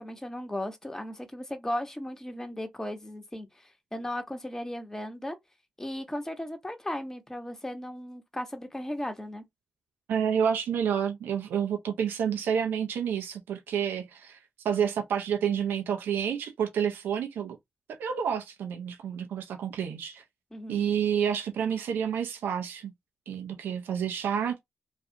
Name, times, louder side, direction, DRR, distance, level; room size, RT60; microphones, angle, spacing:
voice 1, 0.0-5.4 5.8-9.4 20.5-20.8, left 1 dB, 15° left, 1.0 m, -36 dB
voice 2, 10.1-14.4 14.6-17.6 17.9-20.2 20.7-22.9 23.3-24.6, right 8 dB, 80° right, 0.5 m, -29 dB
2.5 x 2.4 x 2.7 m
supercardioid pair, 50°, 3 cm